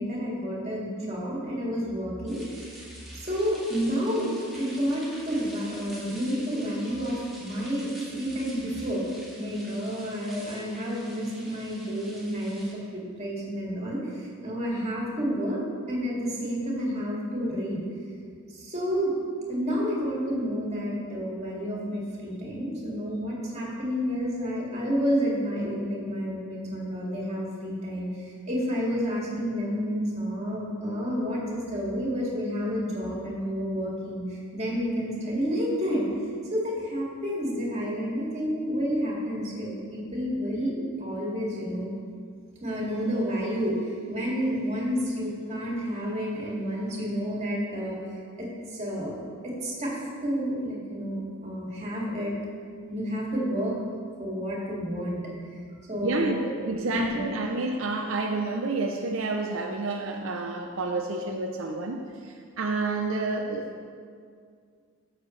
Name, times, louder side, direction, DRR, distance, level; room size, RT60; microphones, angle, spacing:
voice 1, 0.0-2.7 3.2-9.0 9.3-12.7 12.9-15.6 15.9-17.8 18.5-19.1 19.5-36.0 36.5-41.9 42.6-48.0 48.4-52.3 52.9-53.7 54.2-55.2 55.9-56.5 56.9-57.2, equal, 35° right, -5 dB, 2.2 m, -30 dB
sound 1, 2.3-12.7, right 1 dB, ahead, 1.8 m, -47 dB
voice 2, 56.0-56.4 56.7-63.9, right 3 dB, 75° right, 2 dB, 0.5 m, -29 dB
13.5 x 6.5 x 3.2 m, 2.1 s
head